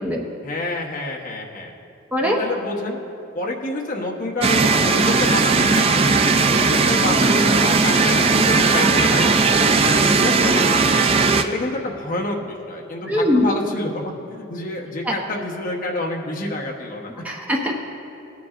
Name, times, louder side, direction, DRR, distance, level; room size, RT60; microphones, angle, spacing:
voice 1, 0.4-1.7 2.2-3.0 3.3-6.1 6.4-10.6 11.2-17.1, left 2 dB, 40° left, -1 dB, 1.0 m, -28 dB
sound 1, 4.4-11.4, right 4 dB, 30° right, 0.4 m, -17 dB
voice 2, 13.1-13.4 15.0-15.1 17.2-17.7, left 1 dB, 5° right, -2 dB, 0.7 m, -21 dB
18.0 x 9.3 x 2.5 m, 2.8 s
head